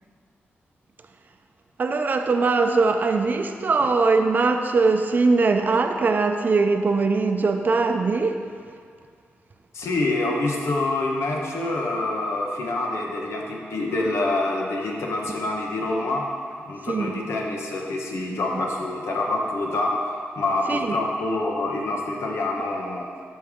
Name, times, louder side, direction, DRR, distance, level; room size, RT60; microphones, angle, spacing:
voice 1, 1.8-8.4 16.9-17.2 18.1-18.6 20.7-21.0 22.9-23.0, right 4 dB, 40° right, 5 dB, 0.6 m, -21 dB
voice 2, 9.7-16.3 16.6-20.0 20.3-23.1, left 2 dB, 85° left, -1 dB, 1.3 m, -26 dB
13.5 x 5.6 x 3.8 m, 2.1 s
wide cardioid pair, 110°, 4 cm